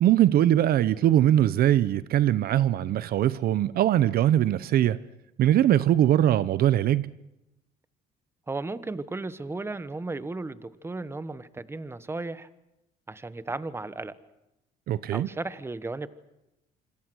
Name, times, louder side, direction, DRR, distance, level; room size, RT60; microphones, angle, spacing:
voice 1, 0.0-5.0 5.4-7.1 14.9-15.3, right 12 dB, 65° right, 0.8 m, -21 dB
voice 2, 8.5-12.5 13.1-14.2 15.1-16.1, right 3 dB, 15° right, 1.3 m, -35 dB
26.5 x 26.0 x 6.3 m
cardioid pair, 110°, 17 cm